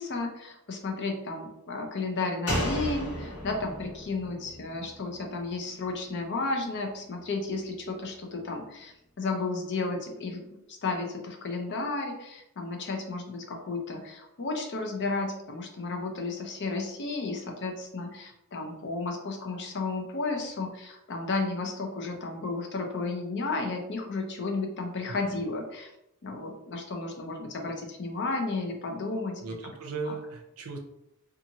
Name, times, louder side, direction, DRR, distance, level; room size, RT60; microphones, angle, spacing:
voice 1, 0.0-25.9 26.2-29.4 30.1-30.2, left 3 dB, 50° left, 2 dB, 0.5 m, -33 dB
Slam, 2.5-5.9 6.2-6.3, equal, 85° left, 1.1 m, -34 dB
voice 2, 29.4-30.8, right 4 dB, 70° right, 4 dB, 0.5 m, -37 dB
2.6 x 2.4 x 2.8 m, 0.84 s
head